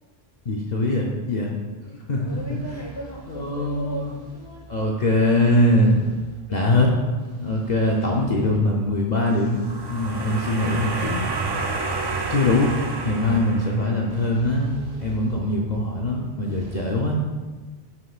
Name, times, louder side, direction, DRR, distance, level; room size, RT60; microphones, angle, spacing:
voice 1, 0.5-1.5 2.1-2.6 3.3-4.1 4.7-6.0 6.5-6.9 7.4-9.6 9.9-11.3 12.3-12.7 13.0-17.2, left 1 dB, 50° left, -1 dB, 0.7 m, -22 dB
voice 2, 1.8-4.8 6.5-6.9 8.4-8.6 10.4-11.0 16.1-16.6, right 1 dB, 25° left, -2 dB, 1.1 m, -39 dB
sound 1, 2.3-16.8, right 2 dB, 85° right, 1.7 m, -46 dB
sound 2, 9.4-14.2, right 3 dB, 35° right, 0.4 m, -29 dB
7.6 x 6.0 x 2.4 m, 1.3 s
omnidirectional pair, 1.0 m